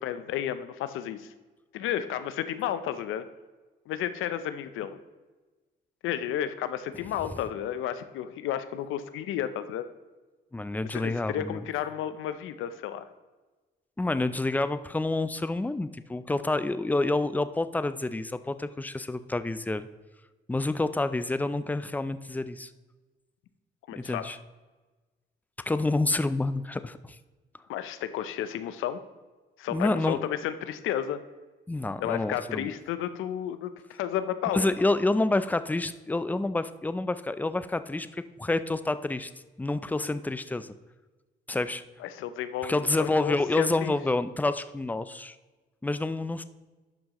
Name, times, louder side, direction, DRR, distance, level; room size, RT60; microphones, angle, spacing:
voice 1, 0.0-1.3 1.7-3.2 3.9-5.0 6.0-9.9 10.9-13.1 23.9-24.4 27.7-29.0 29.6-31.2 32.0-34.7 42.0-43.9, left 10 dB, 85° left, 12 dB, 0.6 m, -32 dB
voice 2, 10.5-11.6 14.0-19.9 20.5-22.7 24.0-24.4 25.7-27.2 29.7-30.2 31.7-32.7 34.5-39.3 39.6-40.8 41.5-41.8 42.6-45.4 45.8-46.4, left 2 dB, 10° left, 13 dB, 0.4 m, -28 dB
11.5 x 5.5 x 3.0 m, 1.2 s
cardioid pair, 90°, 20 cm